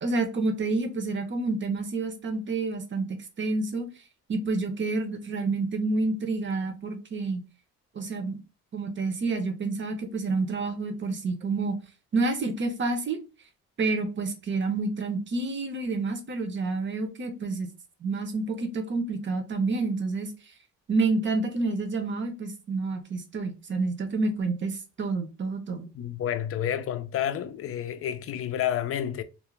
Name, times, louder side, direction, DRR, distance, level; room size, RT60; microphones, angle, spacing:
voice 1, 0.0-3.1 3.4-3.9 4.3-7.4 8.0-8.4 8.7-11.8 12.1-13.2 13.8-17.7 18.0-20.3 20.9-25.9, right 3 dB, 40° right, 0.7 m, -28 dB
voice 2, 25.9-29.2, left 10 dB, 50° left, 0.4 m, -30 dB
2.5 x 2.1 x 3.1 m
cardioid pair, 90°, 30 cm